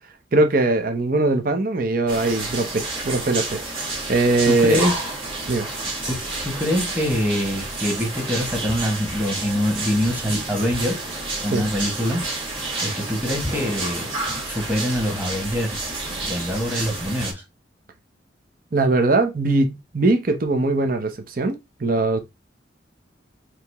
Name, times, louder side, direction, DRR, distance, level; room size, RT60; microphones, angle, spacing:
voice 1, 0.3-4.9 5.5-5.7 11.5-11.6 18.7-22.2, right 2 dB, 50° right, 0.7 m, -21 dB
sound 1, 2.1-17.3, right 2 dB, 25° right, 1.9 m, -30 dB
voice 2, 4.5-5.0 6.1-11.0 11.4-14.1 14.4-15.9 16.2-17.4, equal, 10° right, 1.4 m, -25 dB
4.9 x 2.9 x 3.5 m
head